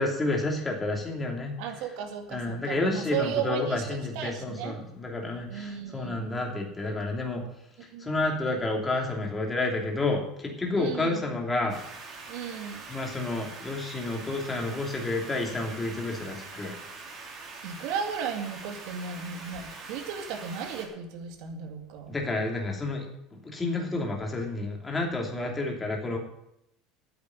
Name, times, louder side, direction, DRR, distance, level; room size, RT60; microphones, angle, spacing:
voice 1, 0.0-1.8 2.3-7.4 8.0-11.8 12.9-16.7 22.1-23.0 23.5-26.2, left 2 dB, 15° left, 0 dB, 2.8 m, -30 dB
voice 2, 1.6-3.8 4.1-4.8 5.5-6.3 7.9-8.1 10.8-11.2 12.3-12.9 17.6-22.2, right 7 dB, 65° right, 4 dB, 2.3 m, -35 dB
sound 1, 11.7-20.9, right 3 dB, 35° right, 3.2 m, -43 dB
9.6 x 7.9 x 9.4 m, 0.79 s
cardioid pair, 150°, 0 cm